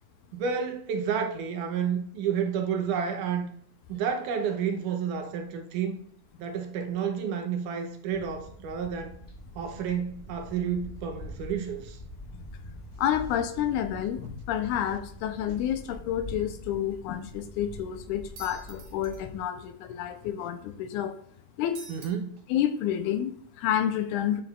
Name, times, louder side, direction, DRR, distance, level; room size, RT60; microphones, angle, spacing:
voice 1, 0.3-3.4 3.9-6.0 6.4-9.1 9.6-12.0 21.9-22.4, right 7 dB, 90° right, 2.4 m, -30 dB
sound 1, 8.1-19.4, equal, 30° left, 2.5 m, -44 dB
voice 2, 13.0-21.2 21.6-21.8 22.5-24.4, left 10 dB, 90° left, 2.1 m, -29 dB
sound 2, 18.4-19.2 21.8-22.1, right 3 dB, 70° right, 3.0 m, -46 dB
12.0 x 6.0 x 2.4 m
omnidirectional pair, 3.5 m